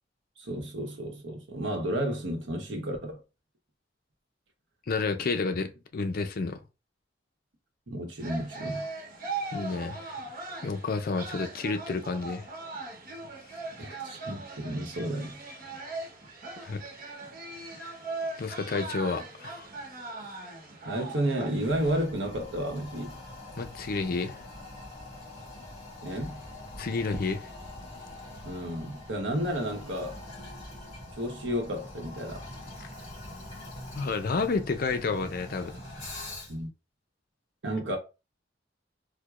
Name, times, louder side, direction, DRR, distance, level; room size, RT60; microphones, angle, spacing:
voice 1, 0.4-3.2 7.9-8.9 13.8-15.4 20.8-23.2 26.0-26.4 28.4-30.2 31.2-32.5 36.5-36.7 37.6-38.0, right 1 dB, 80° right, 1.0 m, -32 dB
voice 2, 4.9-6.6 9.5-10.2 10.6-12.5 16.6-16.8 17.7-18.0 18.4-19.7 23.6-24.4 26.8-27.5 33.9-35.8, left 4 dB, 50° left, 0.5 m, -30 dB
sound 1, 8.2-22.0, right 3 dB, 55° right, 1.0 m, -39 dB
Toilet flush, 21.6-36.7, left 1 dB, 35° left, 2.0 m, -43 dB
4.5 x 2.2 x 2.4 m
head